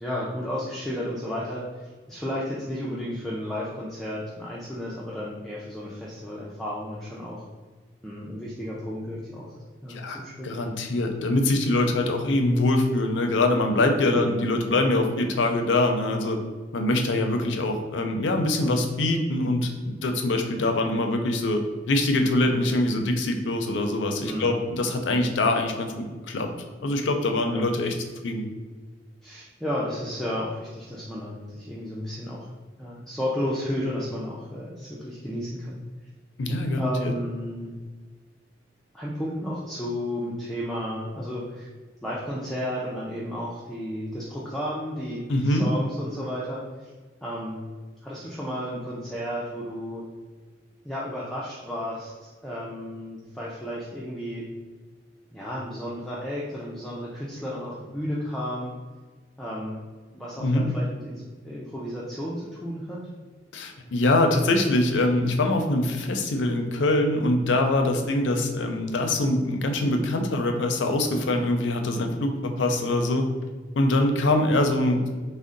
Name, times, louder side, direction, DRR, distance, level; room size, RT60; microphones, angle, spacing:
voice 1, 0.0-7.4 8.0-9.6 9.8-10.6 14.1-14.4 24.3-24.5 27.5-27.6 29.2-32.5 32.8-35.8 36.8-37.7 38.9-41.7 42.0-46.9 47.2-47.7 48.0-50.0 50.8-54.4 55.3-58.7 59.4-59.8 60.1-63.0, equal, ahead, -7 dB, 0.4 m, -33 dB
voice 2, 9.9-16.4 16.7-25.9 26.3-26.5 26.8-27.9 28.2-28.5 36.4-37.1 45.3-45.7 60.4-60.7 63.5-73.2 73.8-75.1, left 2 dB, 80° left, 5 dB, 0.4 m, -24 dB
3.6 x 2.1 x 3.8 m, 1.4 s
head